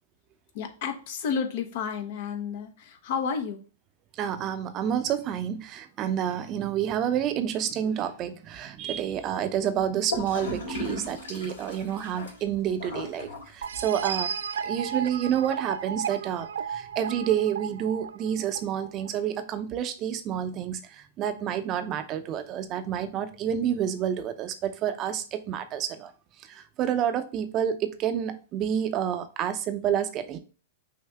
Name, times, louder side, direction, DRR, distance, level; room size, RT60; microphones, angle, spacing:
voice 1, 0.5-3.6, left 6 dB, 55° left, 0.9 m, -31 dB
voice 2, 4.1-14.3 14.6-26.1 26.4-30.4, right 9 dB, 35° right, 0.7 m, -29 dB
Gurgling / Toilet flush, 10.1-14.1, left 1 dB, 80° left, 2.2 m, -37 dB
sound 1, 13.6-19.1, right 7 dB, 75° right, 0.3 m, -34 dB
5.6 x 2.7 x 3.4 m
hypercardioid pair, 110°, 0 cm